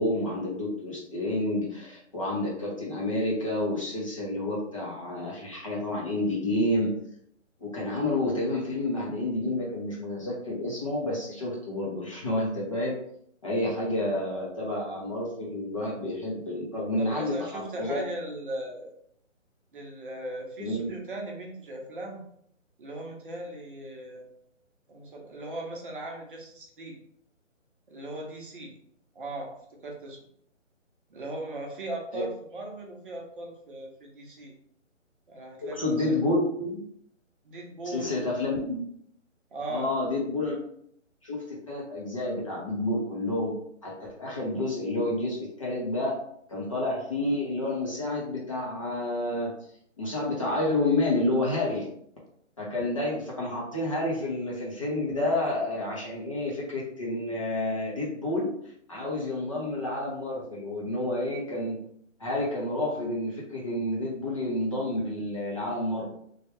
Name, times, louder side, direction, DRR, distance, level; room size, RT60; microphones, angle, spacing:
voice 1, 0.0-6.9 7.6-12.9 13.4-18.0 20.6-20.9 32.1-32.2 35.6-36.8 37.8-38.8 39.7-40.6 41.2-43.5 43.8-46.2 46.5-49.5 50.0-51.9 52.6-58.5 58.9-61.8 62.2-66.1, left 1 dB, 25° left, -5 dB, 0.6 m, -29 dB
voice 2, 17.0-18.9 19.7-22.2 22.8-24.3 24.9-27.0 27.9-28.7 29.1-29.5 29.8-30.2 31.1-34.5 35.3-36.1 37.4-38.4 39.5-39.9, right 1 dB, 45° right, 0 dB, 0.8 m, -38 dB
3.3 x 2.3 x 2.9 m, 0.69 s
figure-of-eight pair, 150°, 38 cm